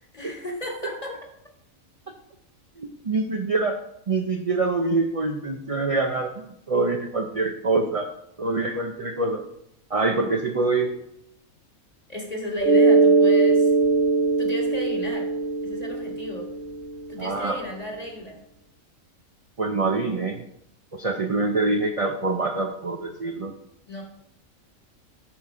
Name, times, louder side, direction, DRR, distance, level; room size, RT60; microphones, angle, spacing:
voice 1, 0.1-1.1 12.1-13.7 14.4-15.3 15.6-16.5 17.1-18.4 23.9-24.0, equal, 30° left, 0 dB, 1.7 m, -34 dB
voice 2, 2.8-3.8 4.1-8.1 8.4-9.4 9.9-10.9 17.2-17.6 19.6-20.4 20.9-23.5, right 3 dB, 40° right, 3 dB, 0.5 m, -25 dB
Mallet percussion, 12.6-17.0, right 3 dB, 10° left, 1.2 m, -20 dB
7.1 x 5.9 x 4.9 m, 0.76 s
omnidirectional pair, 1.4 m